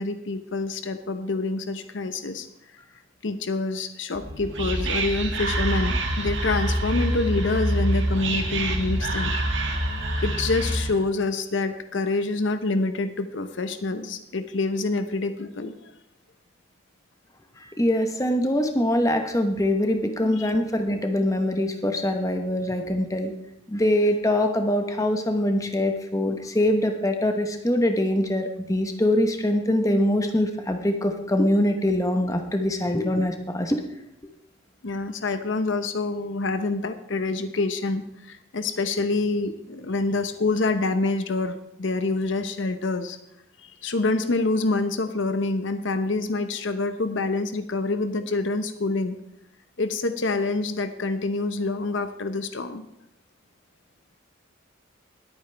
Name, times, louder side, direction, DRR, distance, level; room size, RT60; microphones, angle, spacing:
voice 1, 0.0-2.5 3.2-9.3 10.2-15.8 20.2-20.5 34.8-43.2 43.6-49.2 49.8-52.8, left 3 dB, 65° left, 9 dB, 0.8 m, -26 dB
Whispering, 4.1-11.1, right 1 dB, 60° right, 1.7 m, -26 dB
voice 2, 17.8-23.3 23.7-33.8, left 1 dB, 15° left, 5 dB, 1.0 m, -23 dB
19.5 x 8.8 x 3.4 m, 0.80 s
head